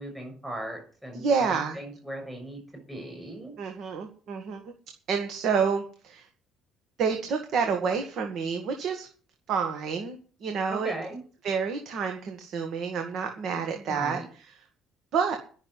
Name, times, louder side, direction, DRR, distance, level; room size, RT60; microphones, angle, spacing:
voice 1, 0.0-3.5 10.7-11.2 13.7-14.3, right 1 dB, 5° right, 1 dB, 6.5 m, -38 dB
voice 2, 1.1-1.8 3.6-4.6 5.1-6.3 7.0-9.1 9.5-10.9 11.4-14.6 15.1-15.4, right 6 dB, 55° right, 5 dB, 1.9 m, -29 dB
12.0 x 6.6 x 9.4 m, 0.41 s
cardioid pair, 145°, 0 cm